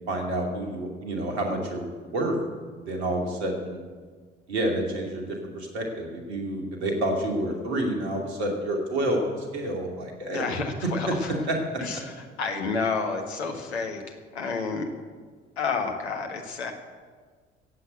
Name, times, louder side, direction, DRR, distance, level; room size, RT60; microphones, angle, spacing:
voice 1, 0.1-2.3 2.8-3.8 4.5-10.5 11.1-11.2 11.5-11.6, right 1 dB, 75° right, 2 dB, 2.6 m, -29 dB
voice 2, 10.3-11.4 11.8-14.0 14.3-14.9 15.6-16.7, left 4 dB, 75° left, 3 dB, 1.7 m, -30 dB
15.0 x 8.3 x 8.8 m, 1.5 s
figure-of-eight pair, 55°, 33 cm